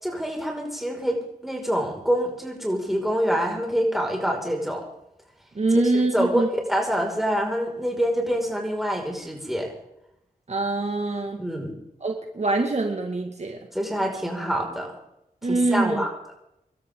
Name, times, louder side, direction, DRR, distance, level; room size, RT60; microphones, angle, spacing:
voice 1, 0.0-4.8 5.9-9.7 11.4-11.7 13.7-14.9 15.4-16.1, equal, ahead, 0 dB, 5.7 m, -26 dB
voice 2, 5.6-6.5 10.5-11.4 12.0-13.6 15.4-16.1, right 2 dB, 45° right, 3 dB, 2.0 m, -24 dB
25.5 x 13.0 x 3.9 m, 0.80 s
wide cardioid pair, 75°, 15 cm